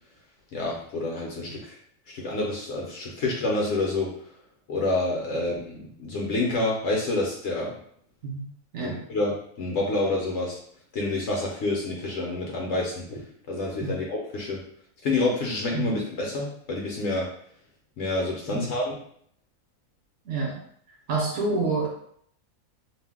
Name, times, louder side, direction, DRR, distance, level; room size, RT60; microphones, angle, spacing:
voice 1, 0.5-1.8 2.1-4.3 4.7-7.8 8.8-10.6 10.9-13.2 13.5-14.6 15.0-17.3 18.0-18.9, left 2 dB, 65° left, -2 dB, 0.8 m, -28 dB
voice 2, 20.2-20.6 21.1-21.9, right 3 dB, 60° right, -3 dB, 0.9 m, -27 dB
2.5 x 2.1 x 3.4 m, 0.65 s
omnidirectional pair, 1.5 m